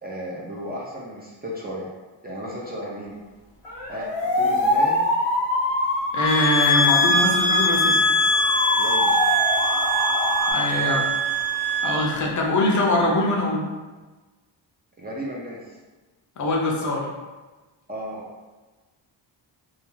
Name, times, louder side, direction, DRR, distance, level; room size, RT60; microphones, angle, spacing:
voice 1, 0.0-1.9 2.2-3.2 3.9-5.0 8.8-9.1 10.7-11.0 15.0-15.6 17.9-18.2, equal, 25° right, -4 dB, 0.4 m, -34 dB
sound 1, 3.6-10.5, left 1 dB, 75° left, 0.9 m, -24 dB
voice 2, 6.1-8.0 10.5-11.0 11.8-13.6 16.4-17.1, left 2 dB, 45° left, -1 dB, 0.5 m, -22 dB
sound 2, 6.2-12.1, equal, 75° right, 0.8 m, -22 dB
2.3 x 2.2 x 3.0 m, 1.3 s
cardioid pair, 100°, 44 cm